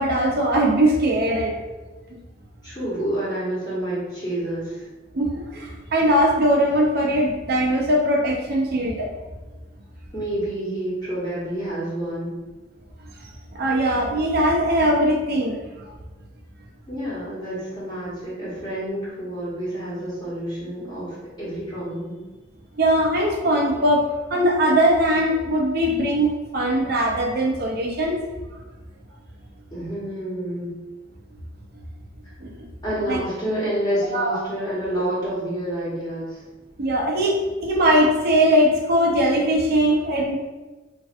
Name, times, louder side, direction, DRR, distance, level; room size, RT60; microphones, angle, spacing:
voice 1, 0.0-1.6 5.2-9.1 13.5-15.9 22.8-28.2 32.4-32.7 33.1-33.2 34.1-34.4 36.8-40.3, right 1 dB, 55° right, 0 dB, 0.6 m, -20 dB
voice 2, 2.6-4.9 10.1-12.4 16.9-22.1 29.7-30.7 32.8-36.4, right 1 dB, 25° left, -8 dB, 1.1 m, -28 dB
3.1 x 2.5 x 2.4 m, 1.2 s
head